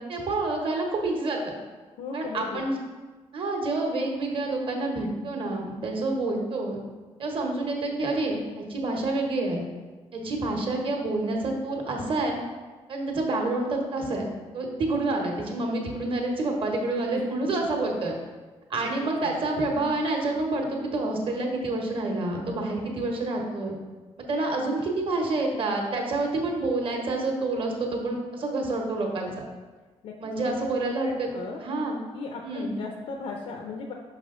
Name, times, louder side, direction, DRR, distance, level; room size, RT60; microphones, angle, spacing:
voice 1, 0.0-1.5 2.1-2.8 3.3-6.8 7.2-9.6 10.1-12.4 12.9-18.1 18.7-23.7 24.3-29.3 30.2-31.3 31.6-32.0 32.4-32.7, right 2 dB, 50° right, 1 dB, 1.2 m, -28 dB
voice 2, 2.0-2.6 17.1-17.5 18.8-19.4 30.0-30.6 31.0-31.6 32.1-33.9, left 4 dB, 90° left, 2 dB, 0.6 m, -37 dB
6.0 x 5.3 x 3.8 m, 1.3 s
cardioid pair, 130°, 11 cm